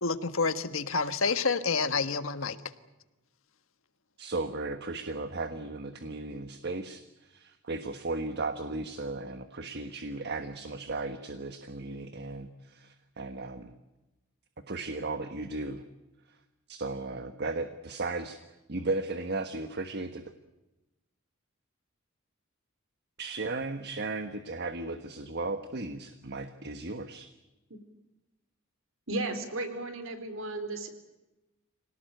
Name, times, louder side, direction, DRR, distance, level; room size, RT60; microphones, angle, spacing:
voice 1, 0.0-2.6, left 4 dB, 75° left, 11 dB, 1.5 m, -28 dB
voice 2, 4.2-7.0 7.3-13.7 14.7-15.8 16.7-18.4 18.7-20.2 23.2-27.3, right 3 dB, 55° right, 9 dB, 1.4 m, -35 dB
voice 3, 29.1-30.9, right 2 dB, 70° right, 9 dB, 4.0 m, -34 dB
26.0 x 18.5 x 9.2 m, 1.0 s
head